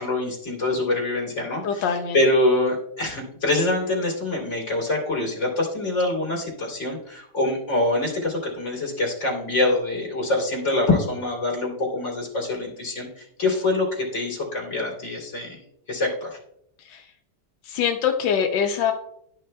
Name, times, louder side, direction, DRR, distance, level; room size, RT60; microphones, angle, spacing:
voice 1, 0.0-15.6 15.9-16.4, left 2 dB, 40° left, -3 dB, 3.0 m, -25 dB
voice 2, 1.6-2.2 16.8-17.0 17.6-18.9, left 7 dB, 85° left, 3 dB, 1.4 m, -24 dB
12.0 x 5.9 x 2.3 m, 0.74 s
omnidirectional pair, 1.9 m